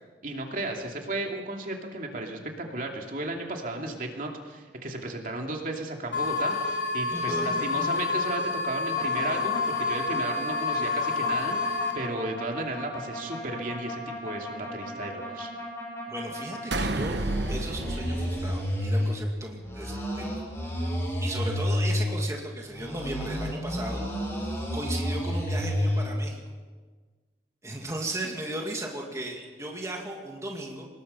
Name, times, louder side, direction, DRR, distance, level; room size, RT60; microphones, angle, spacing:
voice 1, 0.2-15.5, right 2 dB, 50° right, 2 dB, 2.8 m, -34 dB
sound 1, 6.1-11.9, left 4 dB, 80° left, 4.2 m, -28 dB
voice 2, 7.1-8.0 16.1-20.9 21.2-24.0 24.7-26.4 27.6-30.9, right 1 dB, 20° right, 0 dB, 2.4 m, -36 dB
sound 2, 9.0-16.6 16.9-19.2 19.6-22.1 22.7-26.1, equal, 15° left, 6.6 m, -31 dB
sound 3, 16.7-19.3, right 2 dB, 85° right, 1.3 m, -31 dB
26.0 x 20.5 x 5.7 m, 1.4 s
head